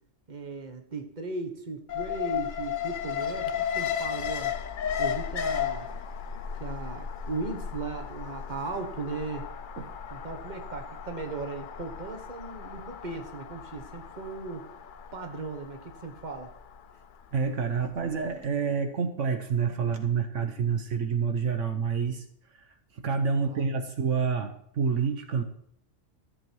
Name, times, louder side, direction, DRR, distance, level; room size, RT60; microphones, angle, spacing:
voice 1, 0.3-4.6 5.0-5.9 6.6-9.5 10.1-14.7 15.1-16.5 23.3-23.7, right 3 dB, 35° right, 5 dB, 1.5 m, -37 dB
Alarm, 1.9-18.0 18.3-18.4, left 8 dB, 50° left, 0.7 m, -35 dB
voice 2, 17.3-22.2 22.5-25.4, right 6 dB, 75° right, 6 dB, 1.3 m, -28 dB
14.0 x 7.7 x 4.7 m, 0.67 s
omnidirectional pair, 1.3 m